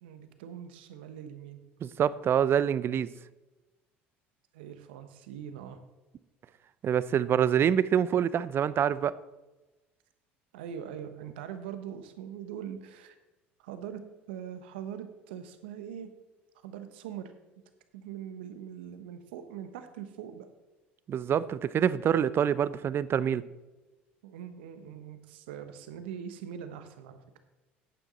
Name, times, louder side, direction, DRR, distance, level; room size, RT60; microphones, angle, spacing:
voice 1, 0.0-1.6 4.5-5.8 10.5-13.1 13.6-14.0 14.3-16.1 16.6-17.3 17.9-20.5 24.2-27.4, right 9 dB, 75° right, 9 dB, 1.0 m, -42 dB
voice 2, 1.8-3.1 6.8-9.2 21.1-23.4, right 9 dB, 40° right, 18 dB, 0.5 m, -26 dB
11.0 x 8.9 x 3.9 m, 1.1 s
hypercardioid pair, 65°, 6 cm